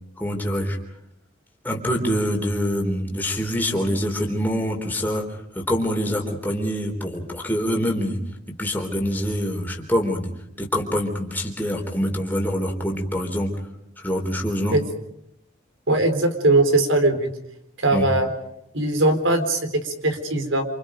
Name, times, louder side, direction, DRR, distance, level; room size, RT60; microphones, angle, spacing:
voice 1, 0.2-0.8 1.6-5.3 5.6-8.2 8.6-10.3 10.6-13.5 14.0-14.8 17.9-18.1, equal, 10° left, 1 dB, 3.9 m, -25 dB
voice 2, 15.9-17.3 17.8-18.3 18.7-20.6, right 2 dB, 85° right, 7 dB, 4.1 m, -20 dB
28.0 x 27.5 x 5.2 m, 0.79 s
head